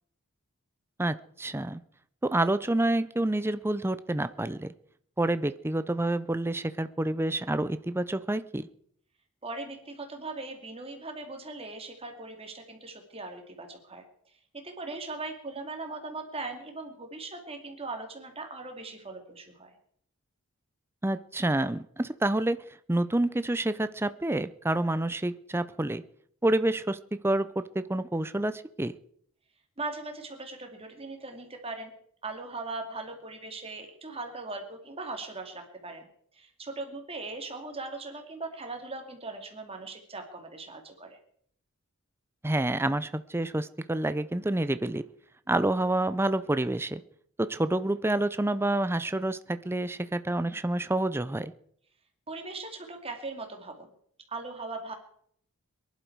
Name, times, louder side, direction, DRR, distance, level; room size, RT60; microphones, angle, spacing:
voice 1, 1.0-1.8 2.2-4.7 5.2-8.7 21.0-22.6 22.9-26.0 26.4-28.9 42.4-45.0 45.5-47.0 47.4-51.5, right 1 dB, 10° right, 13 dB, 0.5 m, -28 dB
voice 2, 9.4-14.0 14.5-19.7 29.8-31.9 32.2-36.1 36.3-41.2 52.3-53.9 54.3-54.9, right 3 dB, 25° right, 4 dB, 2.4 m, -39 dB
22.5 x 11.5 x 4.6 m, 0.66 s
head